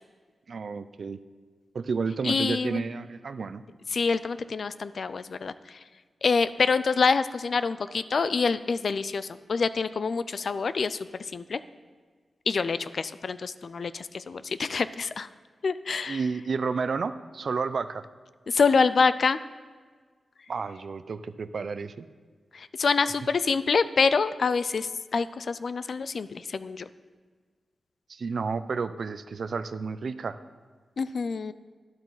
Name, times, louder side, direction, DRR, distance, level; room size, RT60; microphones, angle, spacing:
voice 1, 0.5-1.2 1.7-3.6 16.1-18.0 20.5-22.1 28.1-30.4, right 5 dB, 55° right, 13 dB, 0.4 m, -31 dB
voice 2, 2.2-2.8 3.9-5.8 6.2-11.0 11.3-11.6 12.5-15.3 15.6-16.2 18.5-19.4 22.5-26.9 31.0-31.5, left 5 dB, 50° left, 14 dB, 0.3 m, -26 dB
12.0 x 11.5 x 3.9 m, 1.5 s
wide cardioid pair, 170°, 0 cm